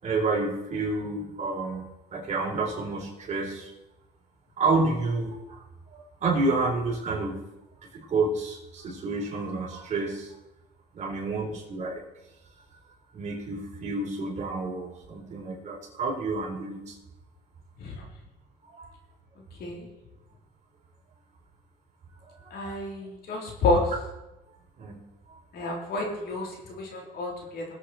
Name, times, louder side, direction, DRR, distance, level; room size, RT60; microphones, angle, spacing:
voice 1, 0.0-3.7 4.6-5.6 5.9-7.4 7.9-10.3 10.9-12.0 13.1-17.0 18.7-18.9 22.4-22.8 24.8-25.0 25.3-25.8, right 3 dB, 45° right, -3 dB, 4.5 m, -30 dB
voice 2, 22.5-23.8 25.5-27.7, left 2 dB, 65° left, 0 dB, 3.8 m, -29 dB
20.5 x 8.1 x 4.5 m, 0.98 s
cardioid pair, 110°, 17 cm